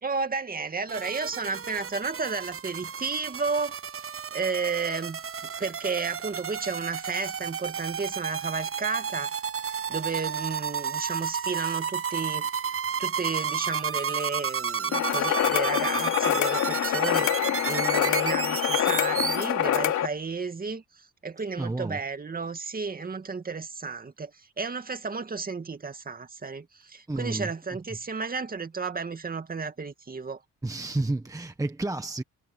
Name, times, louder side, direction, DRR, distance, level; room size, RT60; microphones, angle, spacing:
voice 1, 0.0-5.2 5.6-17.4 17.6-30.4, right 4 dB, 30° right, 2.3 m, -33 dB
sound 1, 0.9-19.4, right 7 dB, 50° right, 7.1 m, -32 dB
sound 2, 14.9-20.1, left 11 dB, 70° left, 2.8 m, -25 dB
voice 2, 21.6-22.0 27.1-27.5 30.6-32.2, right 2 dB, 10° right, 1.4 m, -30 dB
cardioid pair, 90°, 30 cm